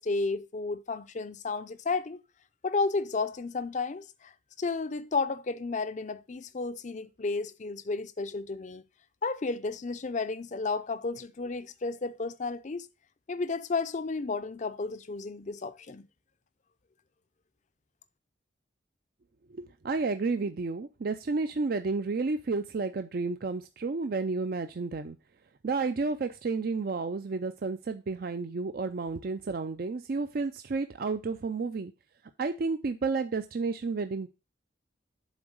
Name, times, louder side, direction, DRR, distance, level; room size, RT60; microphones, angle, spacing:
voice 1, 0.0-2.2 2.6-4.3 4.6-8.8 9.2-12.9 13.3-16.1, left 3 dB, 40° left, 0.5 m, -32 dB
voice 2, 19.5-25.2 25.6-31.9 32.4-34.3, right 4 dB, 50° right, 0.4 m, -31 dB
7.3 x 3.9 x 6.5 m
head